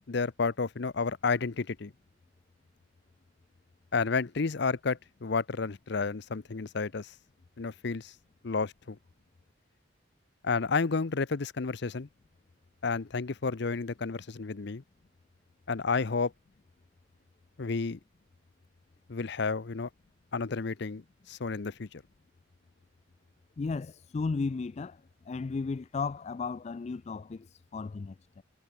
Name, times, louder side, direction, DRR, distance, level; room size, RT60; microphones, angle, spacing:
voice 1, 0.1-1.9 3.9-7.1 7.6-8.1 8.4-9.0 10.4-12.1 12.8-14.8 15.7-16.3 17.6-18.0 19.1-19.9 20.3-22.0, left 4 dB, 60° left, 0.7 m, -31 dB
voice 2, 23.6-25.0 25.3-28.4, left 4 dB, 35° left, 0.3 m, -34 dB
head